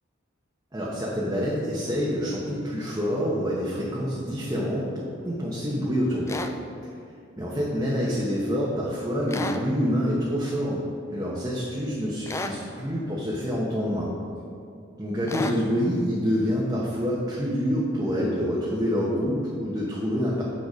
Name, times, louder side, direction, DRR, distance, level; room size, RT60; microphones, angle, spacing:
voice 1, 0.7-6.5 7.4-10.8 11.1-14.1 15.0-20.4, equal, 15° right, -6 dB, 1.1 m, -27 dB
sound 1, 6.3-6.5 9.3-9.6 12.3-12.6 15.3-15.6, left 2 dB, 15° left, 0.3 m, -32 dB
6.8 x 6.6 x 4.9 m, 2.5 s
head